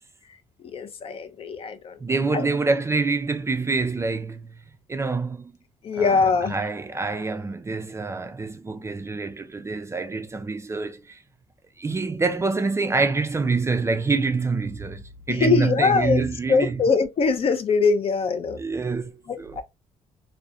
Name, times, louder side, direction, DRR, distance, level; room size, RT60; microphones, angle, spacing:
voice 1, 0.3-2.5 5.8-6.5 15.3-16.2 16.5-18.6 19.3-19.6, left 4 dB, 45° left, 0.4 m, -23 dB
voice 2, 2.0-4.6 4.9-5.5 6.0-6.2 6.5-11.2 11.8-16.8 18.6-19.5, right 4 dB, 20° right, 0.3 m, -26 dB
2.3 x 2.0 x 2.6 m
supercardioid pair, 75°, 13 cm